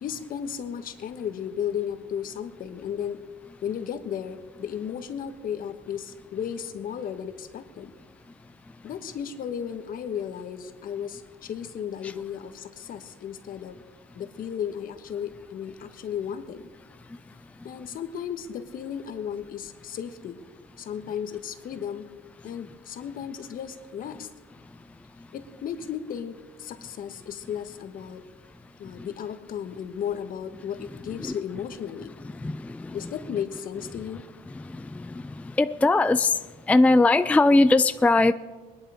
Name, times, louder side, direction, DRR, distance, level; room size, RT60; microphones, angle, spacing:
voice 1, 0.0-3.2 3.6-7.9 8.8-13.7 14.1-16.7 17.6-20.4 20.8-22.1 22.4-24.3 25.3-28.2 28.8-32.1 32.9-34.2, left 8 dB, 55° left, 9 dB, 1.4 m, -34 dB
voice 2, 32.4-32.9 34.9-35.1 35.6-36.3 36.7-38.3, left 2 dB, 10° left, 12 dB, 0.4 m, -20 dB
21.0 x 10.5 x 5.0 m, 1.3 s
cardioid pair, 110°, 17 cm